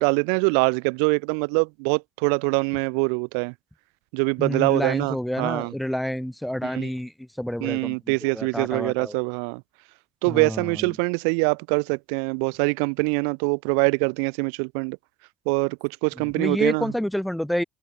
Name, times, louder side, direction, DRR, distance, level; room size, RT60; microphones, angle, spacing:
voice 1, 0.0-3.5 4.1-5.7 6.6-6.9 7.6-9.6 10.2-15.0 15.5-16.9, right 40 dB or more, 90° right, 3.9 m, -24 dB
voice 2, 4.4-7.1 7.4-9.1 10.2-10.7 16.3-17.6, equal, 5° left, 5.7 m, -28 dB
supercardioid pair, 85°, 0 cm